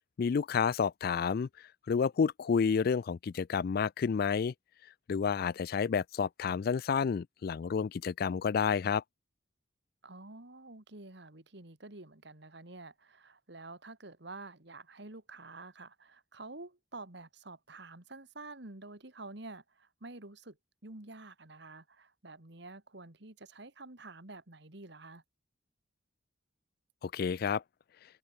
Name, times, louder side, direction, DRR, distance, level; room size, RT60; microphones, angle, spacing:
voice 1, 0.2-1.5 1.9-4.5 5.1-9.0 27.0-27.6, left 6 dB, 50° left, 0.3 m, -30 dB
voice 2, 10.0-20.6 20.8-25.2, right 2 dB, 60° right, 2.3 m, -49 dB
head